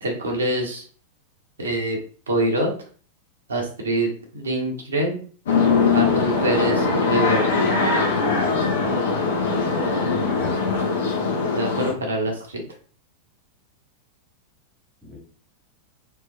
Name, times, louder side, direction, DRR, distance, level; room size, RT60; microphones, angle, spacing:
voice 1, 0.0-0.9 1.6-2.0 2.3-2.7 3.5-5.2 5.9-7.7 11.5-12.6, right 1 dB, 70° right, 1 dB, 1.0 m, -25 dB
sound 1, 5.5-11.9, left 4 dB, 60° left, 1.2 m, -21 dB
voice 2, 8.1-10.9 15.0-15.2, left 3 dB, 5° right, 0 dB, 1.7 m, -35 dB
3.3 x 3.3 x 3.5 m, 0.42 s
figure-of-eight pair, 90°, 0 cm